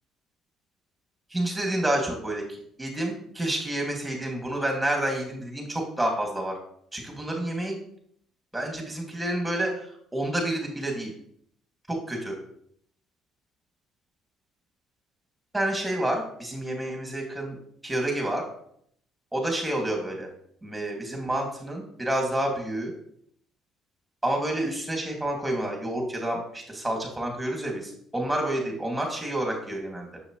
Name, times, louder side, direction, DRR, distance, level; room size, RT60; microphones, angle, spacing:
voice 1, 1.3-2.4 2.8-6.5 6.9-7.8 8.5-11.1 11.9-12.4 15.5-17.6 17.8-18.4 19.3-20.3 20.6-22.9 24.2-30.2, right 1 dB, 5° right, 1 dB, 2.5 m, -29 dB
6.8 x 6.4 x 3.2 m, 0.67 s
cardioid pair, 90°, 0 cm